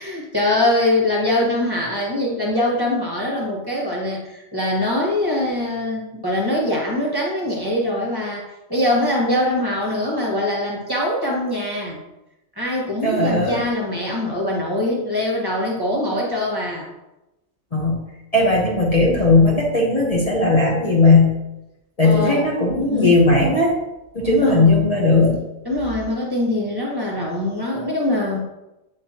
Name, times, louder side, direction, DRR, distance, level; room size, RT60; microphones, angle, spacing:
voice 1, 0.0-12.0 12.5-16.9 22.0-22.5 22.8-23.2 24.3-24.6 25.6-28.4, left 1 dB, 20° right, -3 dB, 1.4 m, -23 dB
voice 2, 13.0-13.6 17.7-18.0 18.3-21.3 22.0-23.7 24.1-25.4, left 2 dB, 35° left, -4 dB, 1.1 m, -17 dB
7.5 x 5.0 x 2.9 m, 0.94 s
omnidirectional pair, 1.2 m